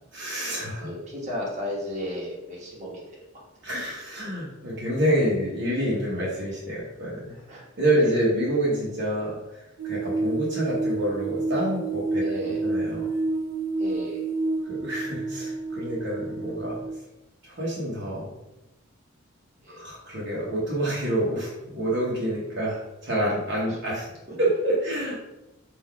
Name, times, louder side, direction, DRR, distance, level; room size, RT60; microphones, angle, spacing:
voice 1, 0.1-0.9 3.6-7.3 7.8-9.4 9.8-12.2 12.6-13.1 14.7-16.8 17.4-18.3 19.7-24.1 24.4-25.1, right 1 dB, 55° right, -6 dB, 1.0 m, -27 dB
voice 2, 0.7-3.4 7.3-7.6 7.9-8.1 12.2-12.6 13.8-14.3 19.6-19.8 23.7-23.8 24.3-24.4, equal, 35° right, -5 dB, 1.2 m, -35 dB
sound 1, 9.8-16.9, right 3 dB, 70° right, 0.6 m, -29 dB
3.9 x 2.6 x 4.5 m, 0.95 s
head